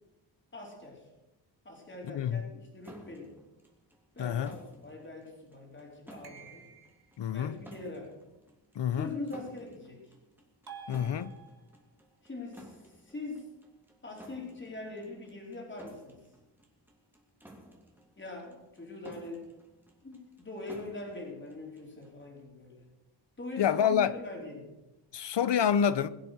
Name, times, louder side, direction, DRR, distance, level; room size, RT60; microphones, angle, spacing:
voice 1, 0.5-1.1 1.6-3.3 4.1-6.6 7.3-8.1 9.0-10.1 12.2-13.5 14.0-16.2 18.2-19.5 20.0-22.8 23.4-24.7, left 2 dB, 25° left, 4.5 m, -42 dB
voice 2, 2.0-2.4 4.2-4.5 7.2-7.6 8.8-9.1 10.9-11.3 23.6-24.1 25.1-26.1, left 8 dB, 75° left, 0.9 m, -27 dB
sound 1, 2.8-22.2, right 1 dB, 5° right, 3.1 m, -55 dB
sound 2, 6.2-7.2 10.7-11.9, right 5 dB, 60° right, 2.3 m, -49 dB
22.0 x 7.7 x 6.6 m
wide cardioid pair, 130°, 43 cm